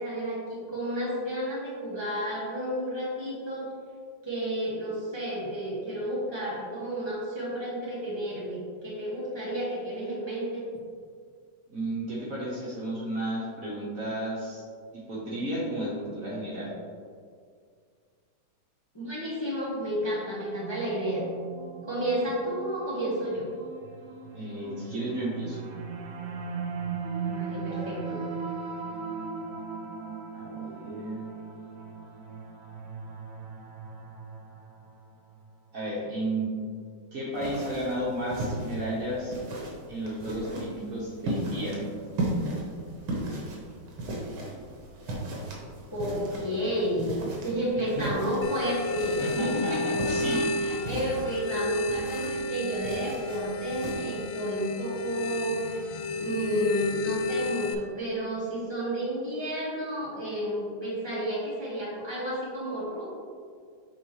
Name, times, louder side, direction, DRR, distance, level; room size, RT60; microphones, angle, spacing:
voice 1, 0.0-3.7 4.2-10.6 18.9-21.3 21.9-23.5 27.3-28.2 45.9-47.1 47.4-63.1, equal, 15° left, -7 dB, 1.1 m, -31 dB
voice 2, 11.7-14.6 15.1-16.7 24.3-25.6 27.7-28.0 30.3-31.3 35.7-36.5 37.1-39.4 39.9-41.9 47.7-48.1 49.2-50.5, right 1 dB, 50° right, -5 dB, 1.4 m, -33 dB
sound 1, 19.8-35.1, right 5 dB, 70° right, 1.3 m, -38 dB
sound 2, 37.3-53.9, right 1 dB, 85° right, 2.0 m, -37 dB
sound 3, 48.4-57.7, left 2 dB, 80° left, 1.3 m, -32 dB
7.5 x 4.6 x 3.1 m, 2.1 s
omnidirectional pair, 2.2 m